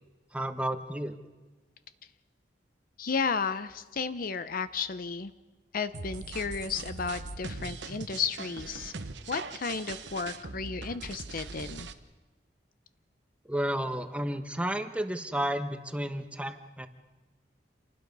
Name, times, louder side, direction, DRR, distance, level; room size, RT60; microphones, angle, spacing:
voice 1, 0.3-1.1 13.5-16.9, right 1 dB, 5° right, 7 dB, 1.2 m, -32 dB
voice 2, 3.0-5.3 5.7-8.9 9.3-11.9, left 5 dB, 55° left, 12 dB, 0.7 m, -33 dB
sound 1, 5.9-11.9, right 4 dB, 80° right, 1.1 m, -41 dB
28.0 x 19.5 x 5.4 m, 1.2 s
head